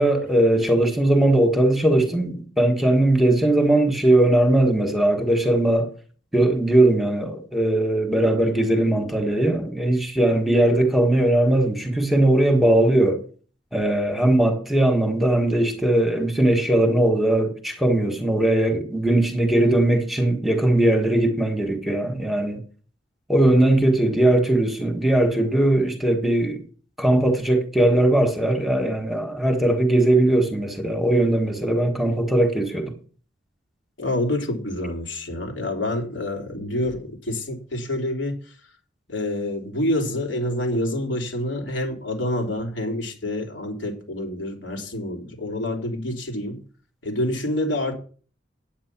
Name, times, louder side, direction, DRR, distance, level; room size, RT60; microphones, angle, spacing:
voice 1, 0.0-5.9 6.3-13.2 13.7-22.6 23.3-26.6 27.0-32.9, right 1 dB, ahead, 1.4 m, -19 dB
voice 2, 34.0-38.3 39.1-46.6 47.0-47.9, left 1 dB, 85° left, 3.3 m, -27 dB
9.4 x 8.7 x 6.0 m
head